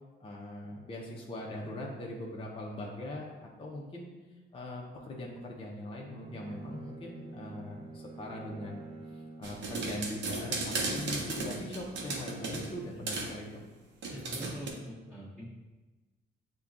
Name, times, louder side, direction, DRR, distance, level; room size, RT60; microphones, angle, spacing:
voice 1, 0.2-4.1 4.5-8.9 9.4-13.7, left 1 dB, 25° left, -2 dB, 0.6 m, -41 dB
Bowed string instrument, 6.1-10.3, right 3 dB, 30° right, 0.5 m, -47 dB
sound 1, 9.4-12.7 13.1-13.4 14.0-14.7, right 3 dB, 65° right, 0.7 m, -35 dB
voice 2, 14.1-15.4, equal, 5° left, -11 dB, 1.3 m, -43 dB
6.6 x 2.2 x 2.4 m, 1.2 s
cardioid pair, 90°, 20 cm